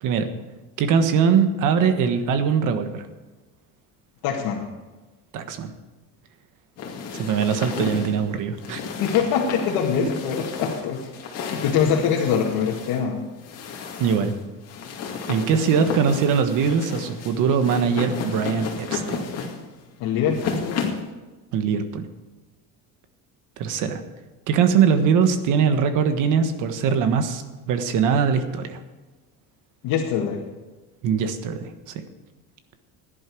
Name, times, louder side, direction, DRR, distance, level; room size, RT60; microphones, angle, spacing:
voice 1, 0.8-3.1 5.3-5.7 7.1-8.8 14.0-14.3 15.3-19.3 21.5-22.1 23.6-24.0 24.5-28.8 31.0-31.7, right 6 dB, 65° right, 8 dB, 1.5 m, -21 dB
voice 2, 4.2-4.6 9.0-11.0 11.3-13.2 20.0-21.0 29.8-30.4, left 7 dB, 85° left, -3 dB, 2.0 m, -23 dB
sound 1, 6.8-21.1, left 5 dB, 45° left, 2.4 m, -33 dB
17.0 x 11.0 x 4.7 m, 1.2 s
cardioid pair, 175°, 34 cm